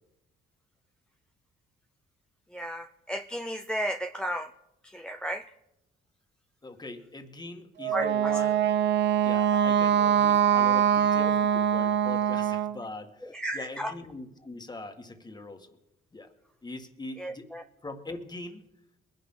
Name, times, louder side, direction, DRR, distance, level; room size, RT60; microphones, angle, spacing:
voice 1, 2.5-4.5 4.8-5.4 7.9-8.4 13.3-13.9 17.2-17.6, equal, 5° left, 6 dB, 0.7 m, -33 dB
voice 2, 6.6-8.7 9.2-15.7 16.1-16.3 16.6-17.5 17.8-18.6, left 2 dB, 20° left, 5 dB, 1.8 m, -41 dB
Wind instrument woodwind instrument, 7.8-12.8, right 9 dB, 60° right, 0.9 m, -23 dB
22.0 x 10.5 x 3.9 m, 0.88 s
cardioid pair, 90°, 20 cm